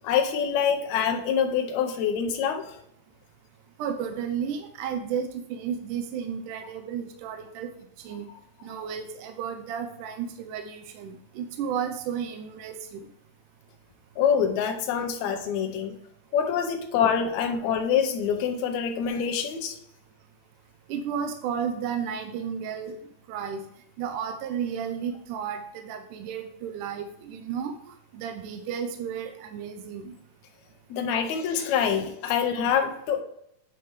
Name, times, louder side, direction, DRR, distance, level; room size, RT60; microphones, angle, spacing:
voice 1, 0.0-2.8 14.2-15.9 16.3-19.7 30.9-33.2, left 7 dB, 80° left, 4 dB, 1.7 m, -25 dB
voice 2, 3.8-7.7 8.0-8.3 8.6-13.0 20.9-23.0 23.3-23.6 24.0-27.7 28.1-30.1, right 7 dB, 80° right, 6 dB, 1.9 m, -33 dB
8.7 x 6.5 x 3.1 m, 0.74 s
omnidirectional pair, 4.2 m